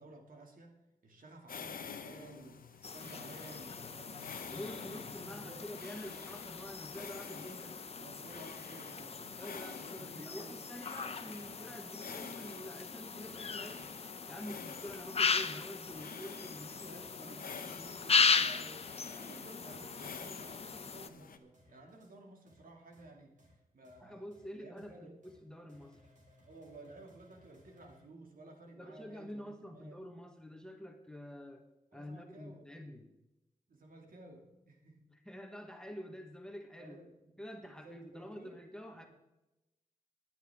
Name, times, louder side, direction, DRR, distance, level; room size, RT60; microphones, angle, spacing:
voice 1, 0.0-5.7 8.0-10.6 11.0-11.4 16.5-23.4 23.7-24.3 24.5-25.2 26.5-30.0 31.9-32.8 33.7-35.0 36.8-37.3 37.6-38.6 39.0-39.1, right 2 dB, 75° right, 1 dB, 2.4 m, -55 dB
sound 1, 1.5-21.4, left 6 dB, 80° left, 0.9 m, -50 dB
sound 2, 2.8-21.1, left 5 dB, 45° left, 0.7 m, -37 dB
voice 2, 4.5-7.8 9.4-13.9 14.3-17.4 24.0-26.0 28.8-33.1 35.1-37.0 37.4-39.1, equal, 5° left, 4 dB, 1.3 m, -47 dB
sound 3, 11.4-12.4 12.8-12.9 13.2-14.3 14.6-14.7 15.1-16.1 16.5-16.6 16.9-17.5 17.8-18.4 18.8-19.3 19.7-20.3 20.6-21.2 21.5-22.1 22.5-22.6 22.9-23.1 23.4-23.5 23.8-24.0 24.3-24.4 24.8-24.9 25.2-25.4 25.7-28.0, left 1 dB, 60° right, 4.2 m, -65 dB
19.5 x 10.0 x 3.6 m, 0.95 s
wide cardioid pair, 145°, 14 cm